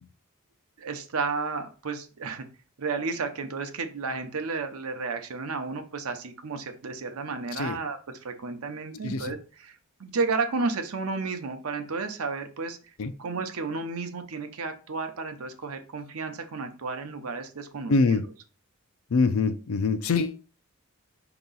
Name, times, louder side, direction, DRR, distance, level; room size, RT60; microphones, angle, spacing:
voice 1, 0.8-2.4 2.8-12.8 13.2-17.9, right 4 dB, 75° right, 7 dB, 0.7 m, -32 dB
voice 2, 17.9-18.3 19.1-20.5, left 4 dB, 70° left, 11 dB, 0.5 m, -24 dB
4.6 x 3.0 x 3.9 m, 0.37 s
head